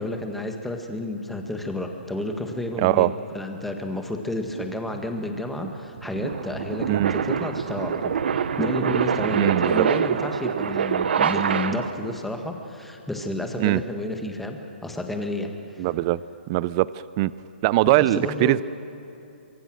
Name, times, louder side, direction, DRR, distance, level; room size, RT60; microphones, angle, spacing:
voice 1, 0.0-15.8 17.8-18.6, left 1 dB, 5° left, 4 dB, 1.6 m, -31 dB
voice 2, 2.8-3.1 6.8-7.1 9.3-9.9 13.6-13.8 15.8-16.2 16.5-16.9 17.2-17.3 17.6-18.6, right 17 dB, 30° right, 19 dB, 0.4 m, -21 dB
sound 1, 4.5-12.1, right 7 dB, 65° right, 1.0 m, -26 dB
24.0 x 22.5 x 6.3 m, 2.8 s
hypercardioid pair, 150°, 6 cm